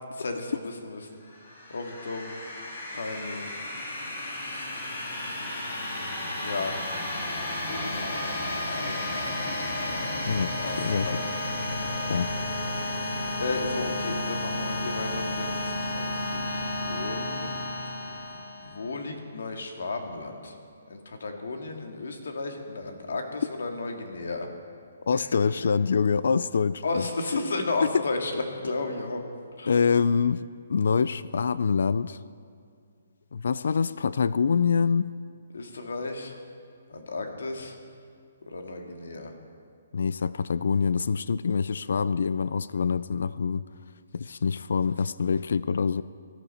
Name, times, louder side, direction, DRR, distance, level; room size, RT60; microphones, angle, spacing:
voice 1, 0.1-1.2 1.7-2.4 2.9-3.5 4.4-4.7 6.3-6.8 7.5-9.2 10.6-11.3 13.0-17.5 18.6-20.6 20.9-24.5 25.2-25.3 26.8-29.2 29.6-29.8 35.5-36.3 36.9-37.8 38.5-39.3, left 3 dB, 80° left, 4 dB, 2.0 m, -34 dB
sound 1, 1.3-18.9, left 1 dB, 45° left, 2.8 m, -32 dB
voice 2, 10.3-11.1 12.1-12.3 25.1-27.1 27.9-28.0 29.7-30.4 30.7-32.2 33.3-35.1 39.9-43.7 44.1-46.0, left 5 dB, 60° left, 17 dB, 0.3 m, -25 dB
18.5 x 13.5 x 4.3 m, 2.2 s
hypercardioid pair, 175°, 0 cm